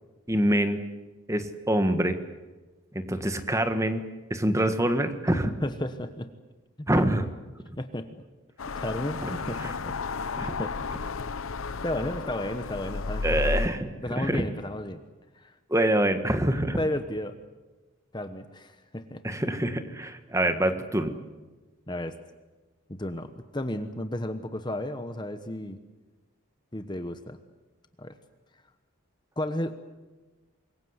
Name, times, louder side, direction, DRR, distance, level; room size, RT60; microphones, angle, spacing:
voice 1, 0.3-0.8 1.3-2.2 2.9-4.0 4.3-5.5 6.9-7.2 9.2-9.3 9.6-9.7 10.4-10.6 13.2-13.9 14.2-14.4 15.7-16.8 19.2-21.1, right 1 dB, 15° right, 8 dB, 1.6 m, -25 dB
voice 2, 5.6-6.3 6.8-7.1 7.8-8.2 8.7-10.0 10.4-10.7 11.1-11.3 11.8-13.6 14.0-15.0 15.3-15.5 16.8-17.3 18.1-19.2 21.9-22.2 22.9-25.8 26.7-27.4 28.0-28.1 29.4-29.8, left 1 dB, 20° left, 9 dB, 1.1 m, -33 dB
sound 1, 8.6-13.7, left 4 dB, 75° left, 0.8 m, -32 dB
26.0 x 22.0 x 8.1 m, 1.2 s
head